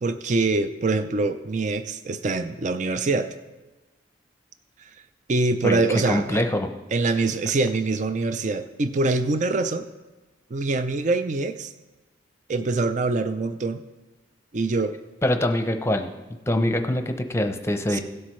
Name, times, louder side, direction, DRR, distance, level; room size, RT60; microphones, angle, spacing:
voice 1, 0.0-3.3 5.3-6.4 6.9-9.9 10.5-11.7 12.5-13.8 14.5-14.9 17.9-18.0, right 3 dB, 40° right, 10 dB, 0.5 m, -24 dB
voice 2, 5.6-6.7 15.2-16.1 16.5-18.0, left 1 dB, 15° left, 6 dB, 0.7 m, -24 dB
17.0 x 7.9 x 3.2 m, 1.1 s
head